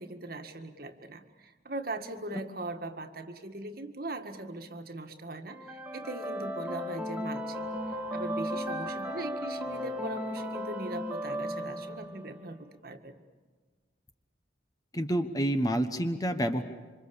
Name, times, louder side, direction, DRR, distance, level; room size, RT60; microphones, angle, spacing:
voice 1, 0.0-13.2, right 2 dB, 50° right, 6 dB, 1.8 m, -40 dB
sound 1, 5.5-12.5, equal, 5° right, 1.7 m, -36 dB
sound 2, 7.3-11.9, right 2 dB, 85° left, 2.3 m, -49 dB
voice 2, 14.9-16.6, right 1 dB, 20° left, 8 dB, 1.3 m, -28 dB
27.0 x 26.0 x 7.0 m, 1.4 s
head